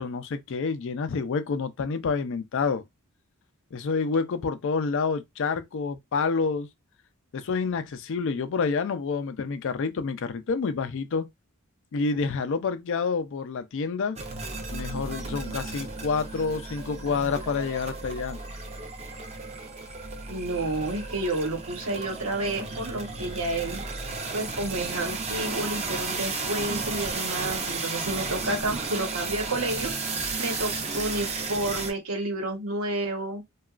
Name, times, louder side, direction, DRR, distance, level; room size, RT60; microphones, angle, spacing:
voice 1, 0.0-2.8 3.7-6.7 7.3-11.3 11.9-14.2 14.7-18.4, left 5 dB, 60° left, 0.4 m, -28 dB
sound 1, 14.2-31.9, right 3 dB, 30° right, 0.5 m, -33 dB
voice 2, 20.3-23.8 24.3-29.9 30.4-33.4, right 2 dB, 75° right, 1.0 m, -30 dB
2.9 x 2.3 x 2.4 m
head